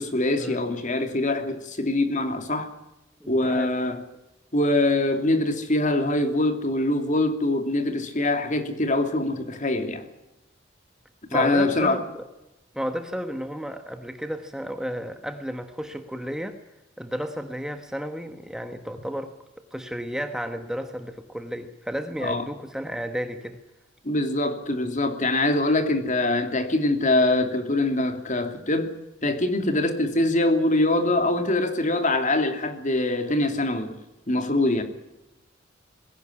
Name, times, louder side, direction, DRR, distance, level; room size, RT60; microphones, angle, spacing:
voice 1, 0.0-2.7 3.3-4.0 4.5-10.1 11.3-12.0 22.2-22.4 24.0-28.9 29.2-33.9 34.3-34.8, left 2 dB, 40° left, 7 dB, 2.8 m, -23 dB
voice 2, 3.2-4.0 11.3-12.3 12.7-16.6 17.0-19.3 19.7-23.6, equal, 5° right, 7 dB, 1.2 m, -33 dB
21.0 x 17.5 x 9.9 m, 0.93 s
head